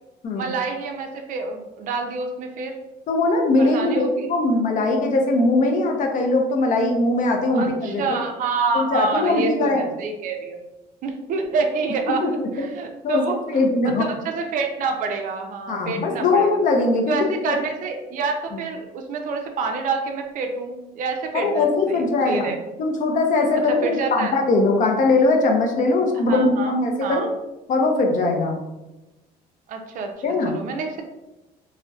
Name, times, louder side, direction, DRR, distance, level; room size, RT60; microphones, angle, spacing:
voice 1, 0.3-2.7 3.6-4.3 7.5-10.6 11.0-13.4 13.8-16.5 17.1-22.6 23.7-24.4 26.3-26.7 27.0-27.3 29.7-30.1 30.5-31.1, right 4 dB, 50° right, 4 dB, 0.4 m, -27 dB
voice 2, 3.1-8.2 8.7-9.8 12.2-12.5 13.0-14.1 15.7-17.6 21.3-22.5 22.8-27.3 27.7-28.6 30.2-30.5, left 2 dB, 50° left, 2 dB, 0.5 m, -20 dB
2.6 x 2.1 x 2.3 m, 1.0 s
cardioid pair, 110°, 17 cm